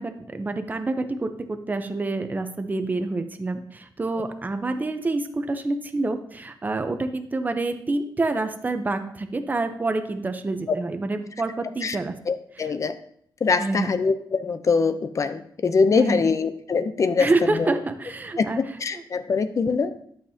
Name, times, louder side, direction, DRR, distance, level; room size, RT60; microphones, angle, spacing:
voice 1, 0.0-12.2 12.6-12.7 13.6-13.9 15.9-16.2 17.2-18.6 18.9-19.0, right 2 dB, 20° right, 8 dB, 0.6 m, -27 dB
voice 2, 12.3-12.9 13.4-17.7 18.4-19.9, left 5 dB, 40° left, 11 dB, 0.6 m, -23 dB
11.5 x 7.4 x 2.8 m, 0.66 s
wide cardioid pair, 135°, 8 cm